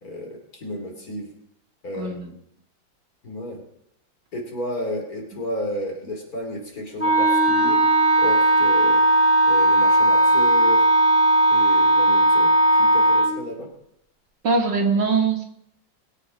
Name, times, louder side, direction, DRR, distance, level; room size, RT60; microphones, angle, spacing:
voice 1, 0.0-1.3 1.8-2.4 3.2-3.6 4.3-7.8 8.2-9.0 9.4-10.9 11.5-12.5 12.8-13.7, left 1 dB, 50° left, 2 dB, 3.3 m, -32 dB
Wind instrument woodwind instrument, 7.0-13.4, right 1 dB, 10° left, 1.8 m, -17 dB
voice 2, 14.4-15.4, right 4 dB, 65° right, 1 dB, 2.6 m, -21 dB
21.0 x 8.0 x 5.1 m, 0.74 s
omnidirectional pair, 2.1 m